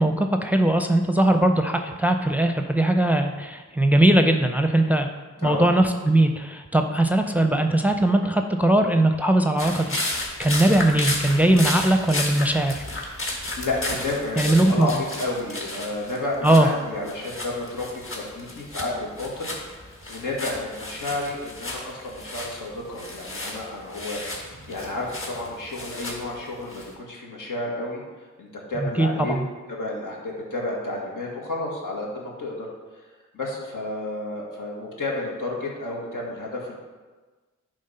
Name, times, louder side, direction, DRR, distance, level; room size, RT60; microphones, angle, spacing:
voice 1, 0.0-5.1 5.4-10.0 10.4-12.8 14.4-14.9 16.4-16.7 28.8-29.5, right 1 dB, 5° right, 5 dB, 0.5 m, -20 dB
sound 1, 9.6-16.7 17.0-26.9, left 1 dB, 45° left, 1.7 m, -33 dB
voice 2, 13.6-28.0 28.4-29.3 29.7-32.7 33.3-36.7, left 2 dB, 85° left, -3 dB, 1.8 m, -31 dB
9.4 x 3.5 x 5.5 m, 1.3 s
wide cardioid pair, 80°, 31 cm